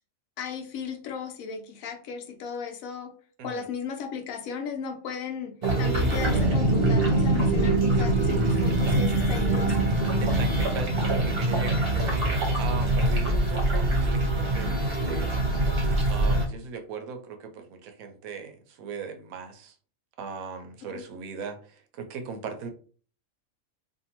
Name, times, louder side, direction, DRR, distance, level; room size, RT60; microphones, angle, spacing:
voice 1, 0.4-3.1 3.4-9.9 20.9-21.0, left 6 dB, 75° left, 4 dB, 1.0 m, -36 dB
sound 1, 5.6-16.4, right 2 dB, 50° right, 0.9 m, -24 dB
voice 2, 10.2-15.3 16.1-19.7 20.2-22.7, right 5 dB, 80° right, 5 dB, 1.0 m, -38 dB
2.6 x 2.5 x 2.9 m, 0.43 s
omnidirectional pair, 1.4 m